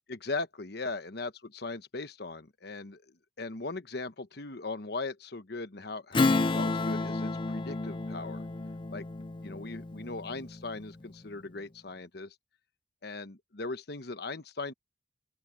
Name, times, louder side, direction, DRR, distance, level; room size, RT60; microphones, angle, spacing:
voice 1, 0.1-8.4 8.9-9.1 9.4-12.3 13.0-14.7, left 3 dB, 55° left, 1.1 m, -39 dB
Strum, 6.1-11.0, left 3 dB, 25° left, 0.4 m, -31 dB
open air
head